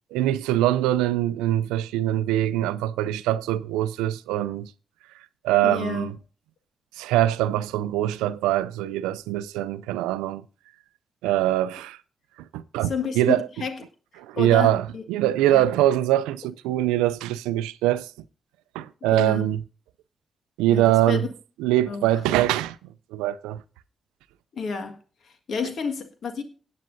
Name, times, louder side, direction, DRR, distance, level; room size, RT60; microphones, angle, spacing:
voice 1, 0.1-4.7 5.4-6.2 7.0-10.4 11.2-12.0 12.5-13.5 14.2-18.1 18.7-19.6 20.6-21.2 21.6-22.8 23.1-23.6, right 13 dB, 90° right, 0.4 m, -23 dB
voice 2, 5.6-6.1 12.8-13.8 14.3-15.0 15.5-15.6 19.1-19.4 20.7-21.3 21.9-22.0 24.5-25.0 25.2-26.4, left 5 dB, 65° left, 1.7 m, -30 dB
17.5 x 8.6 x 2.6 m
hypercardioid pair, 40°, 0 cm